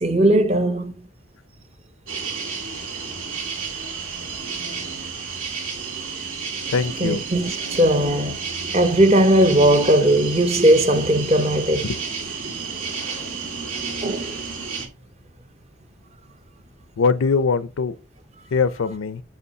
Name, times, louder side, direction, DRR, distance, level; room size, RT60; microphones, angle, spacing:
voice 1, 0.0-0.9 7.0-8.4 8.7-11.9 14.0-14.4, right 1 dB, 30° right, 0.6 m, -18 dB
sound 1, 2.1-14.9, right 5 dB, 85° right, 1.9 m, -31 dB
voice 2, 6.7-7.2 11.8-12.0 17.0-18.0 18.5-19.2, left 5 dB, 80° left, 0.5 m, -22 dB
8.1 x 4.4 x 2.7 m
head